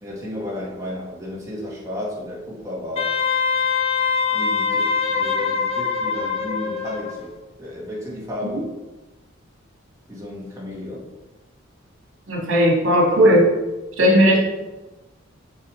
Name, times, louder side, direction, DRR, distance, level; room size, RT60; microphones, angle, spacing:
voice 1, 0.0-3.1 4.3-8.7 10.1-11.1, left 1 dB, 15° right, -5 dB, 1.8 m, -33 dB
Wind instrument woodwind instrument, 3.0-7.2, left 5 dB, 30° left, 0.7 m, -23 dB
voice 2, 12.3-13.5 14.0-14.4, equal, 75° right, -2 dB, 2.5 m, -16 dB
6.6 x 6.2 x 4.8 m, 1.1 s
head